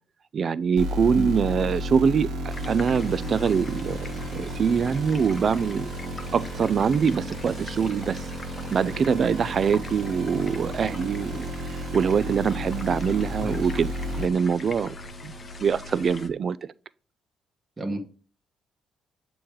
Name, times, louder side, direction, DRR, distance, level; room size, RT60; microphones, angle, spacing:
voice 1, 0.3-5.9 6.3-8.2 8.7-14.9 15.2-15.3 15.6-16.6, right 6 dB, 50° right, 0.3 m, -24 dB
sound 1, 0.8-14.3, right 1 dB, 80° right, 1.2 m, -33 dB
voice 2, 1.2-1.3 13.4-13.5 17.8-18.0, right 1 dB, 25° right, 1.1 m, -30 dB
sound 2, 2.5-16.3, left 2 dB, 35° left, 0.7 m, -41 dB
7.1 x 3.0 x 4.9 m
cardioid pair, 90°, 0 cm